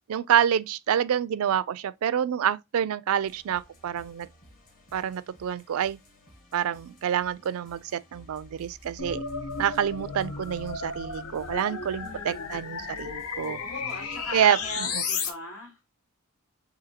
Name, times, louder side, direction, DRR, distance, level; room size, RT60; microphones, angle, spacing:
voice 1, 0.1-4.3 4.9-6.0 6.5-9.2 9.6-13.6 14.3-15.0, right 9 dB, 70° right, 0.3 m, -27 dB
sound 1, 3.2-15.0, equal, 40° left, 1.4 m, -55 dB
sound 2, 9.0-15.3, left 5 dB, 90° left, 0.8 m, -34 dB
voice 2, 12.0-12.5 13.4-15.8, left 1 dB, 75° left, 2.5 m, -40 dB
6.7 x 2.7 x 2.8 m
head